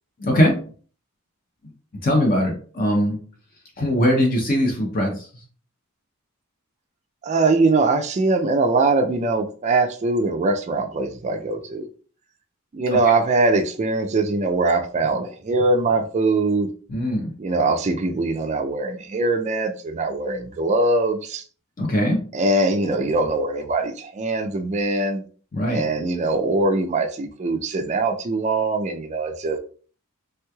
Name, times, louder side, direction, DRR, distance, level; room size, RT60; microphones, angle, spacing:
voice 1, 0.2-0.6 2.0-3.2 3.8-5.3 16.9-17.3 21.8-22.2 25.5-25.8, equal, 40° left, 1 dB, 0.6 m, -20 dB
voice 2, 7.2-11.9 12.7-16.7 17.4-21.4 22.3-25.2 25.7-29.6, right 3 dB, 30° right, 5 dB, 0.3 m, -22 dB
3.2 x 3.1 x 2.3 m, 0.42 s
head